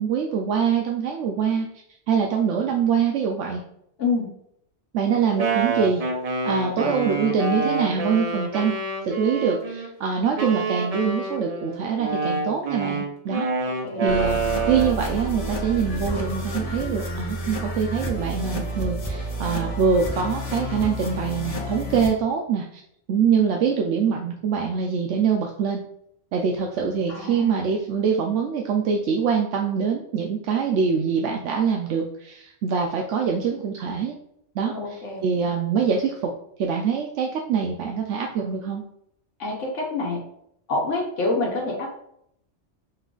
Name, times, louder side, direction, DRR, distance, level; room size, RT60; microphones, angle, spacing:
voice 1, 0.0-1.7 2.1-3.6 4.9-6.0 6.4-8.8 9.0-13.5 14.0-14.4 14.7-22.8 23.1-25.8 26.3-34.2 34.6-34.7 35.2-36.3 36.6-38.8, right 6 dB, 80° right, 1 dB, 0.9 m, -24 dB
voice 2, 4.0-4.3 6.7-6.9 13.8-14.1 27.1-27.8 34.6-35.5 39.4-40.2 40.7-41.9, left 3 dB, 85° left, -2 dB, 1.3 m, -27 dB
Wind instrument woodwind instrument, 5.1-9.9 10.4-15.1, right 3 dB, 40° right, 0.6 m, -27 dB
sound 1, 14.1-22.1, equal, 35° left, 0.7 m, -30 dB
5.6 x 2.4 x 3.7 m, 0.72 s
omnidirectional pair, 1.2 m